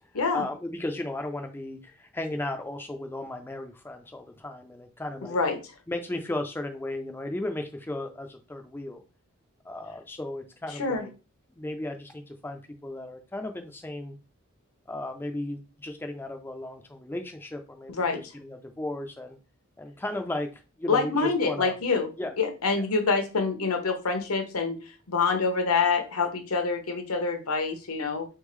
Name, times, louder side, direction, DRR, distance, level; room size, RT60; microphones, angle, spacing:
voice 1, 0.3-5.4 5.9-9.0 9.6-11.1 11.5-14.2 14.9-18.0 18.3-19.4 19.8-21.7 22.2-22.3 22.8-22.9, left 1 dB, 10° left, 5 dB, 0.3 m, -35 dB
voice 2, 5.2-5.6 10.8-11.0 17.9-18.2 20.9-22.1 22.4-24.8 25.1-28.3, left 4 dB, 80° left, 5 dB, 1.0 m, -26 dB
3.9 x 3.5 x 3.1 m, 0.32 s
head